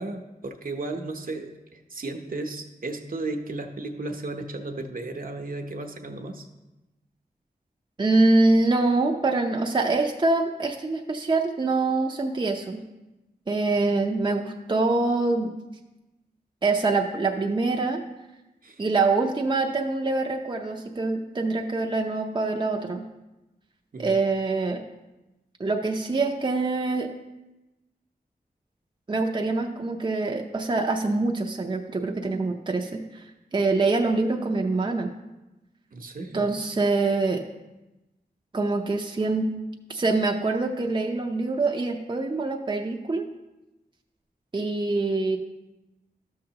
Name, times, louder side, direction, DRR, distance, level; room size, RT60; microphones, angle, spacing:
voice 1, 0.0-6.5 18.6-18.7 23.9-24.1 35.9-36.4, right 2 dB, 60° right, 3 dB, 0.8 m, -34 dB
voice 2, 8.0-12.8 13.5-15.5 16.6-18.0 18.8-23.1 24.0-24.8 25.6-27.1 29.1-33.2 33.5-35.1 36.3-37.4 38.5-39.5 39.9-43.3 44.5-45.4, right 3 dB, 30° right, 2 dB, 0.6 m, -24 dB
12.5 x 6.6 x 2.9 m, 1.0 s
wide cardioid pair, 80°, 16 cm